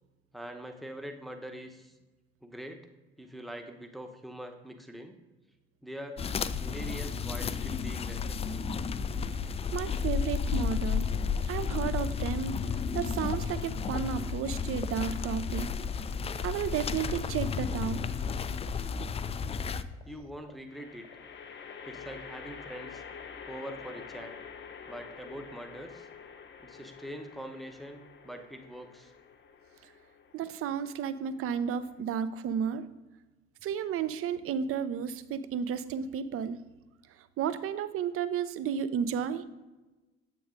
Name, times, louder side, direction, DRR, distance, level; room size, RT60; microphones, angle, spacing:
voice 1, 0.3-2.0 2.4-2.9 3.2-5.1 5.8-6.2 6.6-8.2 8.5-8.7 20.1-21.1 21.9-23.0 23.5-24.3 24.9-26.1 26.6-29.1, equal, ahead, 5 dB, 0.8 m, -43 dB
sound 1, 6.2-19.8, left 6 dB, 20° left, 0.3 m, -32 dB
voice 2, 9.7-11.1 11.5-12.6 12.9-15.7 16.4-18.0 29.8-29.9 30.3-32.9 33.6-36.6 37.2-39.5, right 8 dB, 45° right, 13 dB, 0.6 m, -32 dB
sound 2, 10.8-24.2, left 15 dB, 65° left, 1.2 m, -53 dB
sound 3, 20.7-32.0, left 6 dB, 35° left, 0.8 m, -48 dB
7.7 x 3.8 x 5.2 m, 1.1 s
figure-of-eight pair, 50°, 32 cm